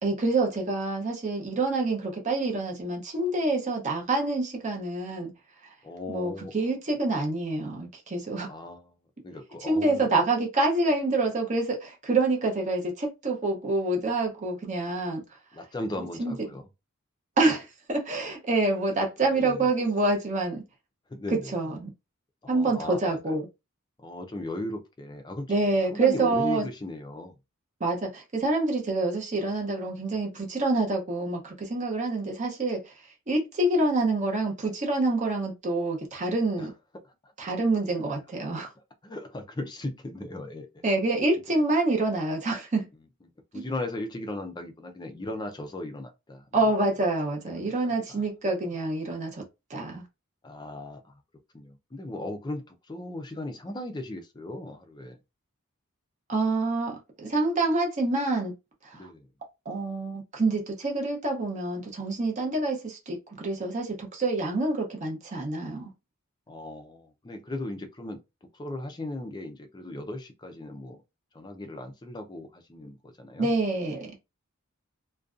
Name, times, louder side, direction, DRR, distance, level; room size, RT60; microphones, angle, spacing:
voice 1, 0.0-5.3 6.1-8.5 9.6-15.2 16.2-16.3 17.4-20.6 21.5-21.9 22.5-23.5 25.5-26.7 27.8-32.8 33.3-36.7 37.4-38.7 40.8-42.9 43.5-43.6 46.5-49.4 49.7-50.1 56.3-58.5 58.8-59.1 59.7-65.9 73.4-74.1, right 2 dB, 35° right, 0.6 m, -27 dB
voice 2, 5.8-6.5 8.5-9.0 9.2-10.1 15.5-16.7 19.3-19.7 21.1-21.5 22.4-23.4 24.0-25.5 25.9-27.3 36.6-36.7 37.2-37.3 39.0-40.8 43.5-46.5 47.5-48.2 50.4-51.2 51.5-55.2 58.9-59.3 66.5-68.2 68.5-71.0 71.3-73.5, left 1 dB, 20° left, 0.4 m, -37 dB
2.5 x 2.2 x 2.4 m
head